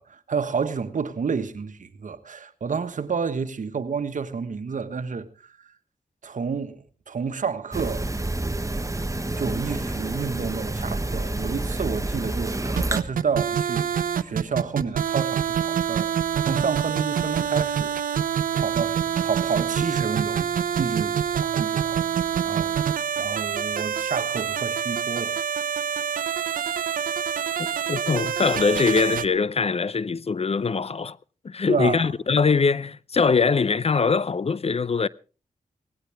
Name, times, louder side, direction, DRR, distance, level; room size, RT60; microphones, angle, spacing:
voice 1, 0.0-5.3 6.2-8.2 9.4-13.9 14.2-17.9 18.5-22.1 22.4-22.7 23.2-25.4 31.7-32.1, right 5 dB, 65° right, 1.4 m, -30 dB
sound 1, 7.7-13.0, right 2 dB, 25° right, 1.3 m, -28 dB
sound 2, 12.8-29.3, right 8 dB, 85° right, 0.7 m, -26 dB
voice 2, 27.9-31.2 31.4-35.1, left 5 dB, 45° left, 0.6 m, -22 dB
18.5 x 16.0 x 3.5 m
cardioid pair, 40°, 14 cm